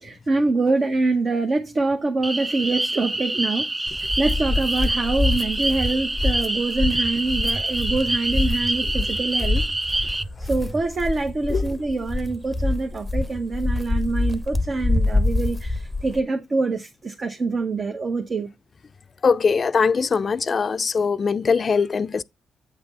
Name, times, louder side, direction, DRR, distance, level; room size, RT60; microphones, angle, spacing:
voice 1, 0.0-9.6 10.4-18.5, right 3 dB, 45° right, 1.1 m, -25 dB
sound 1, 2.2-10.2, right 1 dB, 20° right, 0.5 m, -26 dB
sound 2, 3.9-16.2, left 2 dB, ahead, 0.9 m, -26 dB
voice 2, 19.2-22.2, left 5 dB, 45° left, 0.4 m, -21 dB
8.4 x 3.4 x 5.6 m
supercardioid pair, 65°, 0 cm